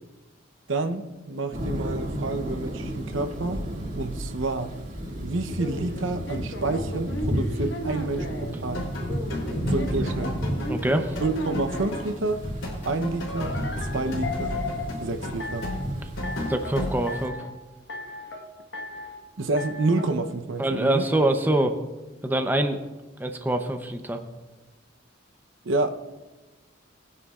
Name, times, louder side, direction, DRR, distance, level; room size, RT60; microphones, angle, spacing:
voice 1, 0.7-3.6 4.0-4.7 5.2-8.8 9.7-10.3 11.2-12.4 12.8-13.6 13.9-14.6 15.0-15.7 19.4-21.1 25.6-26.0, right 2 dB, 80° right, 8 dB, 0.8 m, -28 dB
sound 1, 1.5-17.3, equal, 40° right, 2.2 m, -33 dB
sound 2, 5.6-8.5 9.1-12.0 13.3-14.9 15.4-15.9 16.2-16.8 17.1-17.5 17.9-18.4 18.7-19.2 19.6-20.1, left 2 dB, 65° left, 1.4 m, -36 dB
sound 3, 8.7-17.0, left 1 dB, 90° left, 3.3 m, -34 dB
voice 2, 10.6-11.1 16.5-17.5 20.6-21.8 22.2-22.8 23.2-24.2, right 1 dB, 10° right, 5 dB, 0.7 m, -24 dB
20.5 x 9.6 x 2.4 m, 1.2 s
head